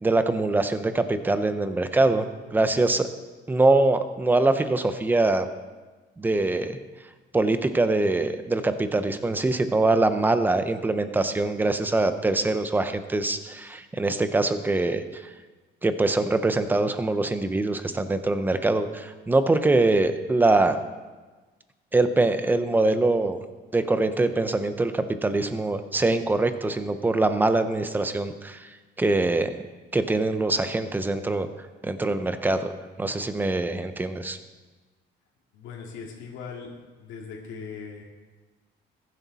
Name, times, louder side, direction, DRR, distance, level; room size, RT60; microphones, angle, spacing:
voice 1, 0.0-2.3 2.5-3.1 3.5-5.5 6.2-6.8 7.3-15.2 15.8-20.8 21.9-23.4 23.7-28.7 29.0-29.5 29.9-31.5 31.8-34.4, right 2 dB, 10° right, 9 dB, 0.7 m, -23 dB
voice 2, 35.5-36.7 37.0-38.0, left 5 dB, 90° left, -2 dB, 2.4 m, -39 dB
21.5 x 11.0 x 4.2 m, 1.3 s
cardioid pair, 175°, 19 cm